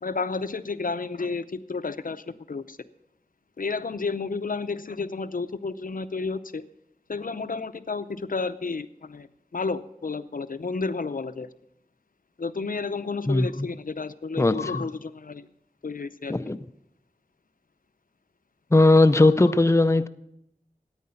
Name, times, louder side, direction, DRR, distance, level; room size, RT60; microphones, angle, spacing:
voice 1, 0.0-2.8 3.6-6.6 7.1-9.3 9.5-11.5 12.4-15.5 15.8-16.3 18.9-19.3, left 4 dB, 70° left, 0.6 m, -31 dB
voice 2, 13.3-13.7 14.4-14.8 16.3-16.6 18.7-20.1, left 2 dB, 20° left, 0.5 m, -19 dB
13.5 x 9.5 x 5.6 m
wide cardioid pair, 55°, 14 cm